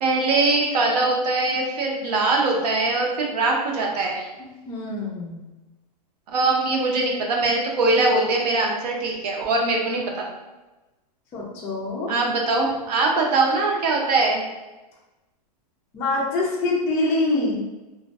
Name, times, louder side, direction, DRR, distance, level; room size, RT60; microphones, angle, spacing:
voice 1, 0.0-4.3 6.3-10.3 12.1-14.4, right 3 dB, 75° right, 0 dB, 0.7 m, -22 dB
voice 2, 4.4-5.5 11.3-12.1 15.9-17.7, left 2 dB, 15° left, -6 dB, 0.3 m, -25 dB
2.5 x 2.2 x 2.3 m, 1.1 s
supercardioid pair, 160°, 21 cm